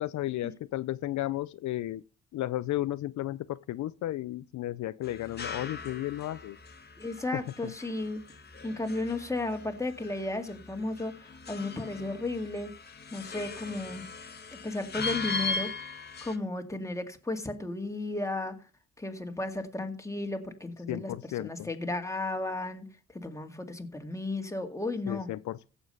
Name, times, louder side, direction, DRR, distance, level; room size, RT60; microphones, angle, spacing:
voice 1, 0.0-2.0 2.3-6.6 7.3-7.7 20.9-21.7 25.1-25.7, left 14 dB, 70° left, 0.6 m, -34 dB
sound 1, 5.0-16.4, left 4 dB, 35° left, 1.8 m, -39 dB
voice 2, 7.0-8.2 8.6-12.7 13.1-14.0 14.5-15.7 16.2-18.6 19.0-22.8 23.1-25.3, left 2 dB, 10° left, 2.0 m, -34 dB
15.5 x 7.2 x 5.5 m
cardioid pair, 90°, 30 cm